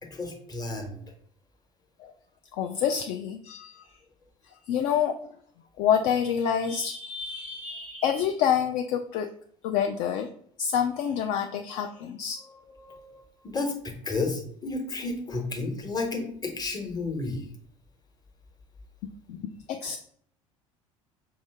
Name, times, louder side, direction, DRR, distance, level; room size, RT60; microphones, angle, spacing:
voice 1, 0.0-1.0 12.4-17.4, left 3 dB, 25° left, 3 dB, 1.1 m, -32 dB
voice 2, 2.5-3.9 4.7-5.2 5.8-9.3 9.6-10.3 10.6-12.4 19.3-20.0, left 8 dB, 45° left, 5 dB, 0.4 m, -27 dB
5.5 x 2.7 x 3.3 m, 0.62 s
figure-of-eight pair, 60°, 17 cm